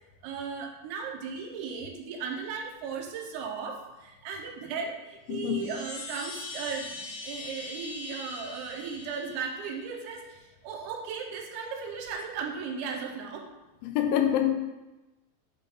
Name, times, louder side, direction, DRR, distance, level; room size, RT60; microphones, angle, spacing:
voice 1, 0.2-13.5, right 5 dB, 80° right, 2 dB, 3.0 m, -36 dB
voice 2, 5.3-5.6 13.8-14.6, left 10 dB, 85° left, 5 dB, 3.1 m, -26 dB
Chime, 5.3-10.0, left 3 dB, 55° left, 2.4 m, -42 dB
9.4 x 4.0 x 4.1 m, 1.1 s
omnidirectional pair, 5.4 m